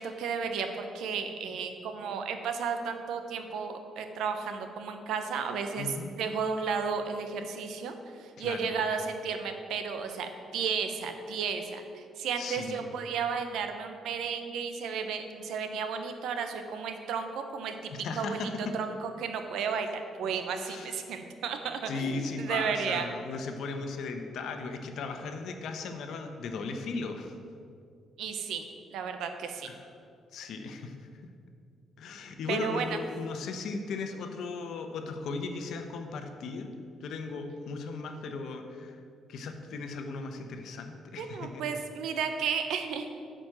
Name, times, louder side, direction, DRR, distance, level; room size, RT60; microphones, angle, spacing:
voice 1, 0.0-7.9 8.2-17.7 18.2-23.1 28.2-28.7 28.9-29.7 32.5-33.0 41.2-43.1, right 6 dB, 80° right, 6 dB, 0.9 m, -33 dB
voice 2, 5.8-6.1 8.4-8.7 12.4-12.8 17.9-18.7 20.6-21.0 21.9-27.4 29.6-29.8 30.3-31.1 32.0-36.7 37.0-39.0 39.3-41.6, left 4 dB, 75° left, 6 dB, 0.9 m, -37 dB
8.7 x 5.2 x 7.6 m, 2.4 s
cardioid pair, 90°, 0 cm